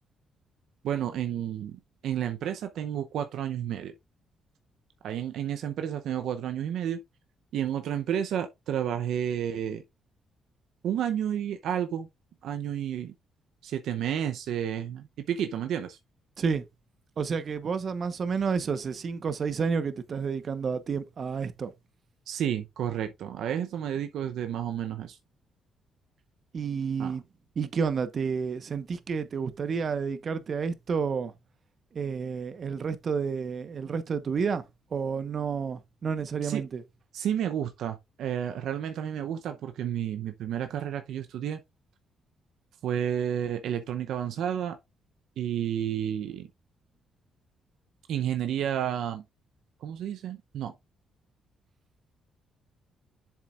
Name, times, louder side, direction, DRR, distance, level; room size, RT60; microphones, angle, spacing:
voice 1, 0.8-3.9 5.0-7.0 7.5-9.8 10.8-12.1 12.4-13.1 13.6-16.0 22.3-25.2 27.0-27.1 36.4-36.6 37.1-41.6 42.8-44.8 45.4-46.5 48.1-49.2 49.8-50.7, right 9 dB, 75° right, 0.7 m, -31 dB
voice 2, 17.2-21.7 26.5-27.2 27.6-31.3 31.9-34.6 34.9-36.8, right 5 dB, 50° right, 1.0 m, -30 dB
7.3 x 7.3 x 2.5 m
cardioid pair, 90°, 0 cm